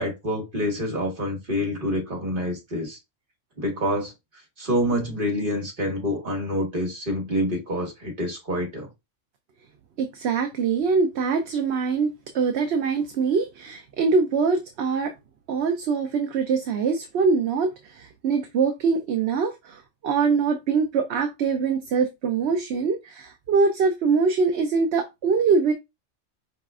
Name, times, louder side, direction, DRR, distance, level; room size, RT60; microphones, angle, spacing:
voice 1, 0.0-3.0 3.6-4.1 4.6-8.9, equal, 45° right, 1.8 m, -27 dB
voice 2, 10.0-15.1 15.5-25.7, right 5 dB, 65° right, 0.9 m, -23 dB
4.9 x 4.1 x 2.4 m
omnidirectional pair, 1.3 m